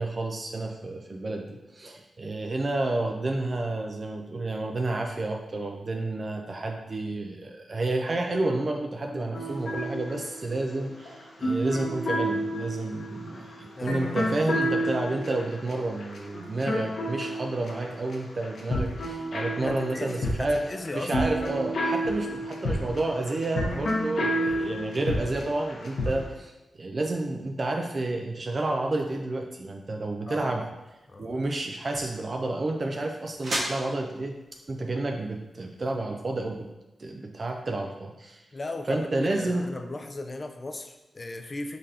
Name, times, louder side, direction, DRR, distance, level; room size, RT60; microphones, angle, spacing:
voice 1, 0.0-20.7 20.9-26.5 26.8-30.7 31.2-34.4 34.7-36.7 37.0-38.4 38.9-39.7, right 2 dB, 40° right, 2 dB, 0.4 m, -30 dB
sound 1, 9.3-18.1 18.4-26.3, equal, 70° left, 1.0 m, -30 dB
voice 2, 13.8-14.2 19.6-21.3 30.3-30.5 31.1-31.4 38.5-41.8, left 2 dB, 30° left, 7 dB, 0.4 m, -37 dB
sound 2, 30.7-36.7, right 1 dB, 65° right, 1.1 m, -39 dB
4.9 x 3.9 x 2.8 m, 1.0 s
wide cardioid pair, 110°, 0 cm